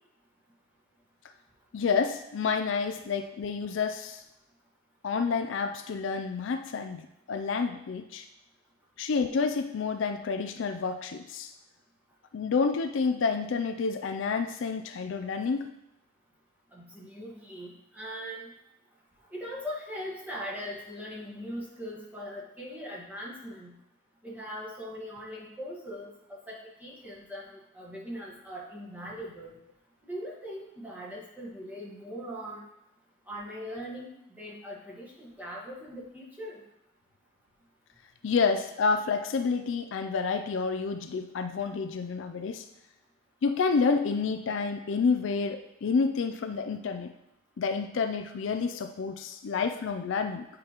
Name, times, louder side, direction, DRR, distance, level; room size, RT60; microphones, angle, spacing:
voice 1, 1.7-4.2 5.0-7.0 7.3-8.3 9.0-11.5 12.3-15.7 38.2-42.7 43.4-47.1 47.6-50.5, left 5 dB, 65° left, 7 dB, 0.4 m, -29 dB
voice 2, 16.7-18.5 19.3-23.7 24.2-29.5 30.0-32.6 33.3-36.6, equal, 10° right, -5 dB, 1.4 m, -40 dB
8.5 x 4.9 x 3.0 m, 0.83 s
head